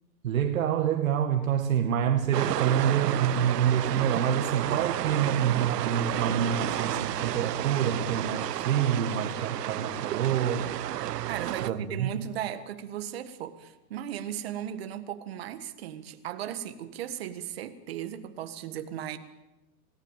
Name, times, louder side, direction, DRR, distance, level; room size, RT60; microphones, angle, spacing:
voice 1, 0.2-10.7 11.6-12.1, right 9 dB, 55° right, 5 dB, 2.0 m, -27 dB
sound 1, 2.3-11.7, right 13 dB, 70° right, 0.9 m, -31 dB
voice 2, 5.3-5.7 11.3-19.2, right 10 dB, 35° right, 9 dB, 1.8 m, -37 dB
30.0 x 18.5 x 9.1 m, 0.99 s
hypercardioid pair, 175°, 49 cm